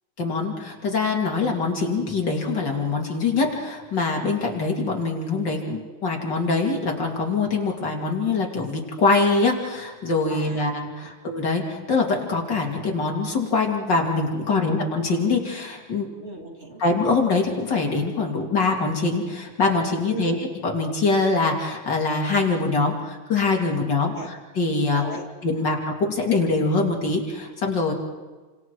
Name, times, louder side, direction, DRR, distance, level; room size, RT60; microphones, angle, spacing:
voice 1, 0.2-16.1 16.8-25.0 25.4-27.9, left 3 dB, 55° left, 0 dB, 3.3 m, -24 dB
voice 2, 10.3-10.7 11.0-11.1 14.5-14.7 16.2-16.8 20.1-20.4 24.1-24.3 24.9-25.3 25.5-25.7, right 2 dB, 30° right, 0 dB, 2.9 m, -37 dB
29.0 x 26.0 x 4.7 m, 1.3 s
omnidirectional pair, 2.3 m